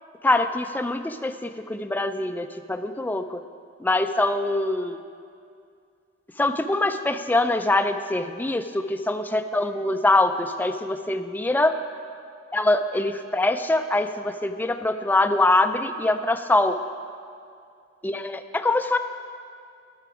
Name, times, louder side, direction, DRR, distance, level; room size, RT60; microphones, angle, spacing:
voice 1, 0.2-3.4 3.8-5.0 6.4-11.8 12.5-16.8 18.0-19.0, left 2 dB, 10° left, 8 dB, 0.3 m, -23 dB
12.0 x 6.0 x 4.9 m, 2.3 s
head